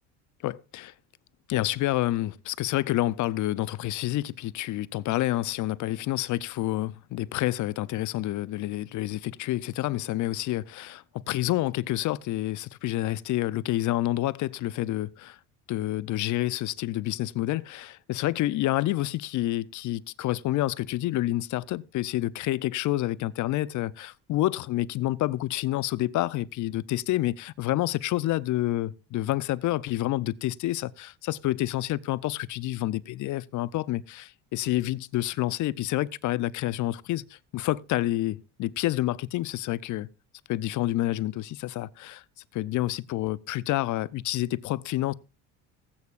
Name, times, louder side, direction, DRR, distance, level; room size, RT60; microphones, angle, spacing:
voice 1, 0.4-0.9 1.5-15.4 15.7-40.1 40.5-42.2 42.5-45.1, left 15 dB, 55° left, 0.6 m, -28 dB
18.5 x 8.5 x 2.5 m
supercardioid pair, 95°, 37 cm